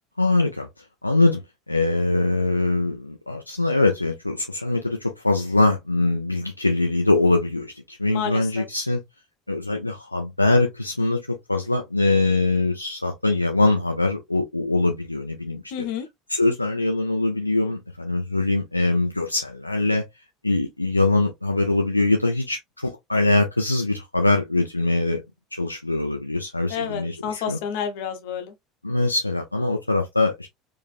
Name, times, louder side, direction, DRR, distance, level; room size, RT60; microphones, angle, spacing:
voice 1, 0.2-0.7 1.0-1.4 1.7-9.0 9.5-11.2 11.5-15.6 16.3-20.0 20.4-25.2 25.5-27.6 28.8-30.5, left 2 dB, 85° left, 0.4 m, -22 dB
voice 2, 8.1-8.7 15.7-16.1 26.7-28.5, left 8 dB, 60° left, 0.9 m, -30 dB
4.0 x 2.5 x 2.3 m
figure-of-eight pair, 70°, 0 cm